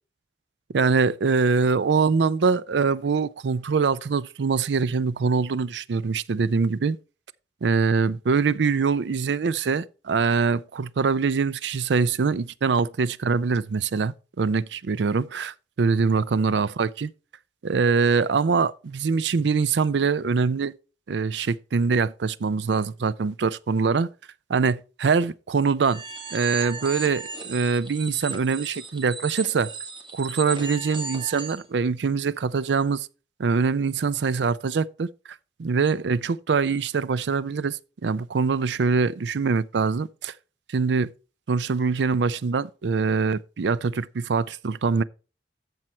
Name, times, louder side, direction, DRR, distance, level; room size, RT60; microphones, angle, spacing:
voice 1, 0.7-7.0 7.6-17.1 17.6-20.7 21.1-24.1 24.5-26.0 26.3-27.2 27.5-29.7 30.1-33.1 33.4-35.1 35.6-40.3 40.7-41.1 41.5-45.0, right 5 dB, 75° right, 0.5 m, -23 dB
sound 1, 25.8-31.6, right 4 dB, 25° right, 1.9 m, -36 dB
13.5 x 4.6 x 4.3 m
head